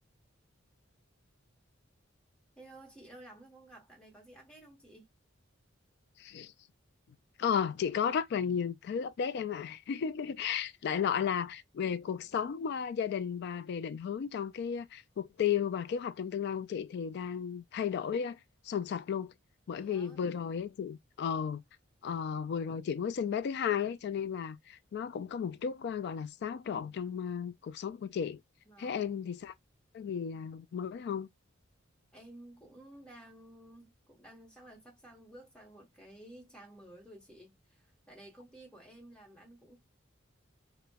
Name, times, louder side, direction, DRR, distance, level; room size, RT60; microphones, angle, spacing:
voice 1, 2.6-5.1 19.7-20.3 28.6-29.1 32.1-39.8, right 1 dB, 5° left, 1.0 m, -54 dB
voice 2, 6.2-6.5 7.4-18.4 18.6-19.3 19.7-21.6 22.0-28.4 28.8-29.5 29.9-31.3, left 7 dB, 60° left, 0.3 m, -34 dB
4.0 x 2.2 x 2.2 m
head